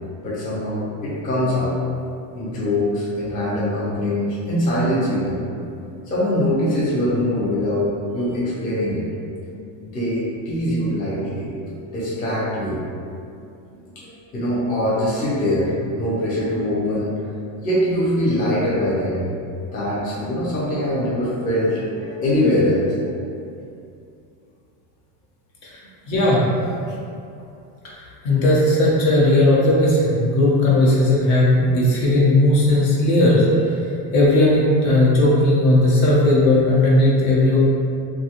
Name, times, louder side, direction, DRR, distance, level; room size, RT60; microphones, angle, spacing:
voice 1, 0.2-1.8 2.3-5.4 6.1-9.1 9.8-11.5 11.9-12.8 13.7-17.1 17.6-19.3 19.7-22.9, left 1 dB, 20° left, -8 dB, 0.4 m, -22 dB
voice 2, 26.1-26.5 28.2-33.5 34.1-37.6, left 1 dB, 60° left, -6 dB, 0.9 m, -16 dB
2.6 x 2.2 x 2.8 m, 2.5 s
cardioid pair, 140°, 41 cm